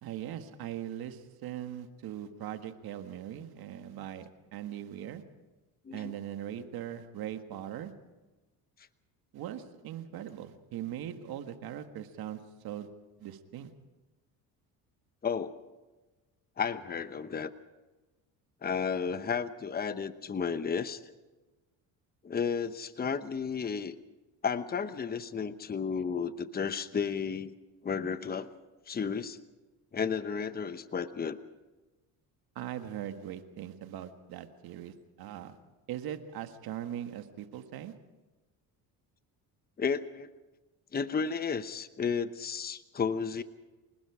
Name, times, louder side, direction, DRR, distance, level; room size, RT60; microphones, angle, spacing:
voice 1, 0.0-5.2 5.9-7.9 9.3-12.9 13.2-13.7 32.6-35.6 35.9-37.9, right 11 dB, 65° right, 8 dB, 1.8 m, -40 dB
voice 2, 15.2-15.6 16.6-17.5 18.6-21.0 22.2-23.9 24.4-27.5 27.8-28.5 28.9-29.4 29.9-31.4 39.8-40.3 40.9-43.4, left 6 dB, 25° left, 12 dB, 1.0 m, -33 dB
26.5 x 19.5 x 5.0 m, 1.2 s
cardioid pair, 95°, 39 cm